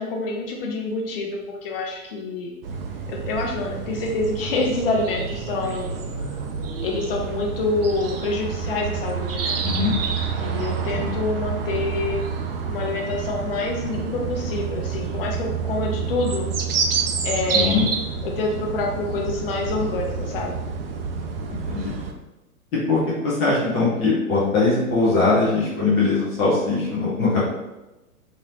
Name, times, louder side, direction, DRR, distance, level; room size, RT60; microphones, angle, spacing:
voice 1, 0.0-2.5 3.1-5.9 6.8-9.6 10.4-12.2 12.7-16.5 17.2-17.8 18.2-20.6, left 3 dB, 40° left, 0 dB, 0.8 m, -27 dB
sound 1, 2.6-22.1, right 5 dB, 45° right, 0.5 m, -28 dB
voice 2, 9.6-10.0 10.9-11.1 17.5-17.9 21.5-21.9 22.7-27.4, left 3 dB, 15° left, -7 dB, 0.4 m, -21 dB
3.8 x 2.6 x 3.0 m, 1.0 s
figure-of-eight pair, 110°, 43 cm